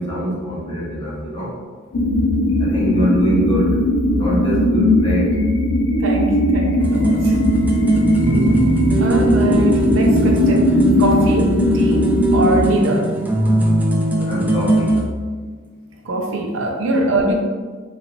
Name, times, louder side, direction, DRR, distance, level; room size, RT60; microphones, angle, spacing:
voice 1, 0.0-1.5 2.6-3.8 4.2-5.3 14.3-14.9, equal, 25° left, -6 dB, 0.9 m, -23 dB
sound 1, 1.9-12.7, left 1 dB, 85° left, 0.5 m, -18 dB
voice 2, 6.0-7.4 9.0-13.1 16.0-17.3, right 1 dB, 75° right, 1 dB, 0.5 m, -22 dB
sound 2, 6.8-15.0, right 1 dB, 10° right, 0.3 m, -20 dB
3.8 x 3.0 x 2.5 m, 1.5 s
head